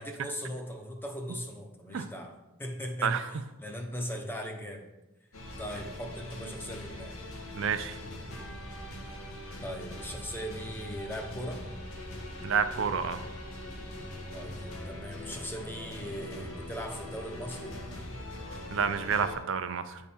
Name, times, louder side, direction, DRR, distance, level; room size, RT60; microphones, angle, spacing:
voice 1, 0.0-4.8 5.6-7.1 9.6-11.6 14.3-17.8, equal, 10° left, 3 dB, 0.7 m, -39 dB
sound 1, 5.3-19.4, left 1 dB, 80° left, 1.2 m, -41 dB
voice 2, 7.5-8.0 12.4-13.2 18.7-20.0, right 6 dB, 60° right, 10 dB, 0.4 m, -29 dB
9.4 x 3.6 x 4.3 m, 1.0 s
head